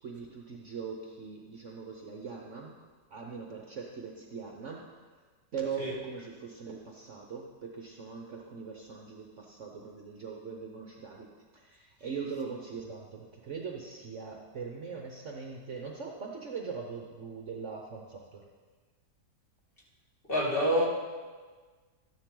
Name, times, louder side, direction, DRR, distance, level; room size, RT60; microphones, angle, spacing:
voice 1, 0.0-2.8 3.1-5.3 5.5-11.3 11.5-18.4, right 5 dB, 50° right, 1 dB, 1.1 m, -41 dB
voice 2, 20.3-20.8, equal, 30° left, -5 dB, 2.4 m, -26 dB
13.0 x 10.0 x 3.8 m, 1.4 s
omnidirectional pair, 1.9 m